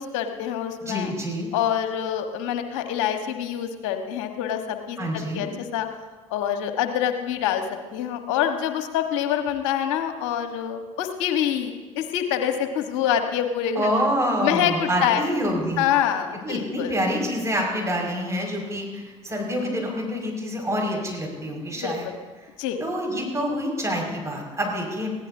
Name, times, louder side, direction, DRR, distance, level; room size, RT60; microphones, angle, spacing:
voice 1, 0.0-1.1 1.5-5.9 6.3-7.6 7.9-13.9 14.4-15.2 15.8-16.9 21.8-22.1 22.6-22.8, left 9 dB, 70° left, 6 dB, 1.4 m, -26 dB
voice 2, 0.8-1.5 5.0-5.4 13.7-15.9 16.4-22.1 22.8-25.1, equal, 20° right, -1 dB, 5.7 m, -27 dB
20.5 x 16.0 x 2.8 m, 1.3 s
hypercardioid pair, 60°, 16 cm